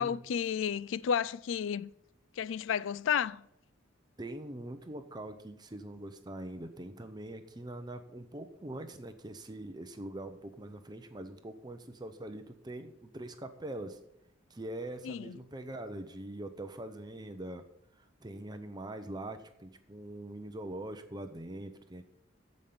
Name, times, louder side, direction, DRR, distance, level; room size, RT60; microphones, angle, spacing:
voice 1, 0.0-1.9 2.4-3.4 15.0-15.4, left 7 dB, 70° left, 0.3 m, -32 dB
voice 2, 4.2-14.0 14.5-17.6 18.0-22.0, right 1 dB, 20° right, 0.7 m, -43 dB
14.5 x 5.3 x 5.7 m
head